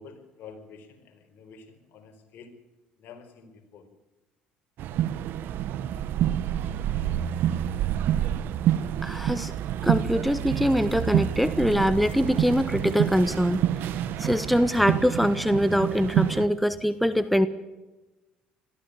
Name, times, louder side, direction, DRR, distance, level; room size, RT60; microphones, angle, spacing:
voice 1, 0.0-2.5 3.0-3.8, left 5 dB, 60° left, 6 dB, 4.3 m, -48 dB
sound 1, 4.8-16.5, right 11 dB, 65° right, 1.2 m, -27 dB
voice 2, 9.0-9.5 9.8-13.6 14.2-17.5, equal, ahead, 13 dB, 1.0 m, -23 dB
21.5 x 14.0 x 9.9 m, 1.1 s
hypercardioid pair, 70°, 4 cm